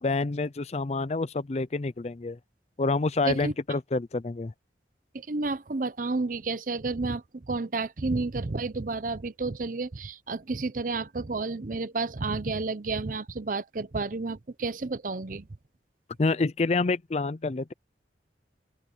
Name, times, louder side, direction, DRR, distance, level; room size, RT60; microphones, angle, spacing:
voice 1, 0.0-2.4 2.8-4.5 16.2-17.7, left 3 dB, 35° left, 0.5 m, -27 dB
voice 2, 5.1-15.5, right 3 dB, 45° right, 0.7 m, -31 dB
open air
head